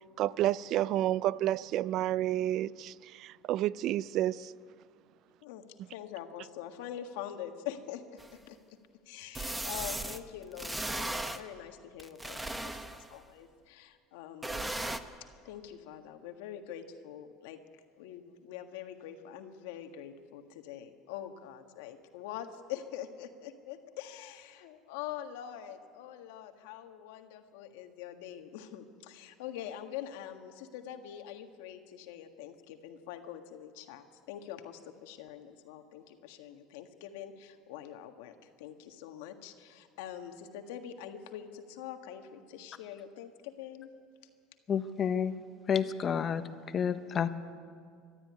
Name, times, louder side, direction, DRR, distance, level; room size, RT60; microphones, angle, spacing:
voice 1, 0.2-4.5, right 13 dB, 55° right, 0.5 m, -30 dB
voice 2, 5.4-8.6 9.0-14.8 15.4-17.6 17.9-43.9, left 10 dB, 85° left, 1.7 m, -44 dB
sound 1, 8.2-8.3 9.3-10.2 10.6-11.4 12.0-13.1 14.4-15.0, right 1 dB, 10° right, 1.0 m, -36 dB
voice 3, 44.7-45.3 45.7-47.3, left 7 dB, 35° left, 1.1 m, -30 dB
23.0 x 12.5 x 9.6 m
supercardioid pair, 120°, 0 cm